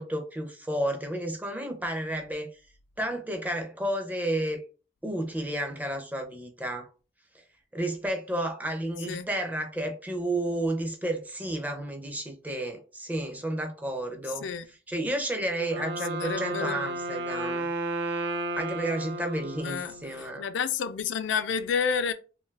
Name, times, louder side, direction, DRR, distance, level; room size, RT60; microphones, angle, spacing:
voice 1, 0.0-2.5 3.0-4.6 5.0-6.9 7.7-14.4 14.9-17.7 18.6-20.5, right 1 dB, 10° right, 0.4 m, -31 dB
Wind instrument woodwind instrument, 15.5-20.4, right 2 dB, 70° right, 0.5 m, -33 dB
voice 2, 16.2-16.8 19.6-22.1, left 6 dB, 85° left, 0.4 m, -30 dB
2.6 x 2.3 x 3.2 m
head